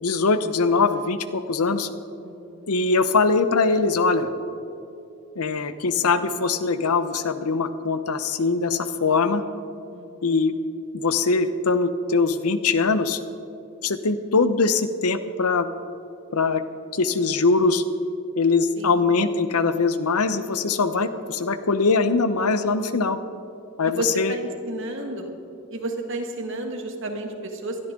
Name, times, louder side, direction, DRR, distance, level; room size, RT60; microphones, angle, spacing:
voice 1, 0.0-1.9 2.7-4.3 5.4-9.4 10.2-10.5 10.9-13.2 13.8-15.7 16.3-16.6 16.9-17.8 18.4-23.2 23.8-24.3, left 4 dB, 85° left, 11 dB, 0.8 m, -22 dB
voice 2, 2.2-2.7 9.9-10.3 18.8-19.0 23.8-25.3 25.7-27.8, right 2 dB, 55° right, 3 dB, 1.8 m, -32 dB
21.5 x 13.0 x 3.8 m, 2.8 s
head